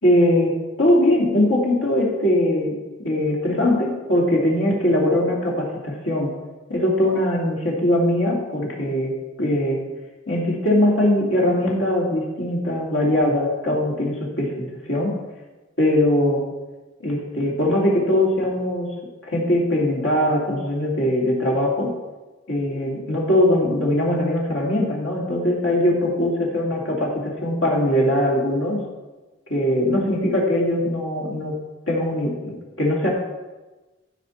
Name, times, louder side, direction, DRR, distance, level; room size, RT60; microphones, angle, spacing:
voice 1, 0.0-6.3 6.7-9.8 10.3-15.2 15.8-16.4 17.0-18.9 19.2-21.9 22.5-28.8 29.5-31.6 31.9-33.1, left 1 dB, 85° left, -2 dB, 2.6 m, -21 dB
15.0 x 5.0 x 4.3 m, 1.2 s
head